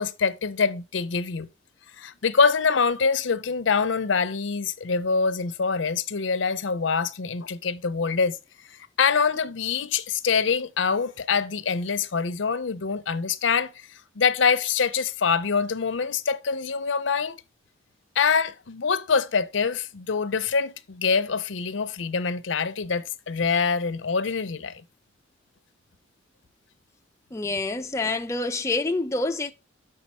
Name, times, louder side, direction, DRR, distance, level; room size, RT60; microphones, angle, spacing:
voice 1, 0.0-1.5 2.0-8.4 9.0-13.7 14.2-17.4 18.2-24.8, left 5 dB, 70° left, 0.6 m, -25 dB
voice 2, 27.3-29.5, left 3 dB, 15° left, 0.5 m, -27 dB
7.2 x 4.9 x 4.3 m
head